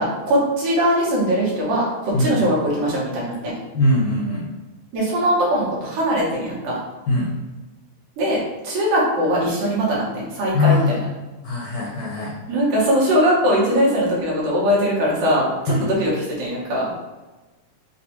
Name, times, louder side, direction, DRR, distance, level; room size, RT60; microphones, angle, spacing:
voice 1, 0.0-3.5 4.9-6.8 8.2-11.1 12.5-16.9, equal, 70° right, -6 dB, 2.6 m, -21 dB
voice 2, 3.7-4.5 7.1-7.3 10.5-10.9 11.4-12.3 15.7-15.9, left 2 dB, 80° left, -5 dB, 1.7 m, -20 dB
6.5 x 2.4 x 2.8 m, 1.2 s
omnidirectional pair, 4.3 m